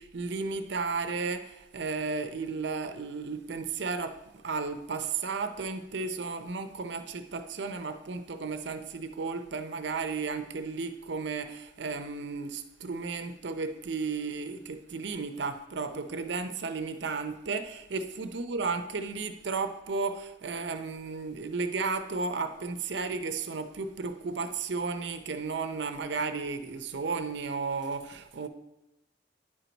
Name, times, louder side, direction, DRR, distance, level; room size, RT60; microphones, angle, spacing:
voice 1, 0.0-28.5, right 4 dB, 70° right, 9 dB, 0.6 m, -34 dB
9.8 x 4.5 x 4.0 m, 0.91 s
head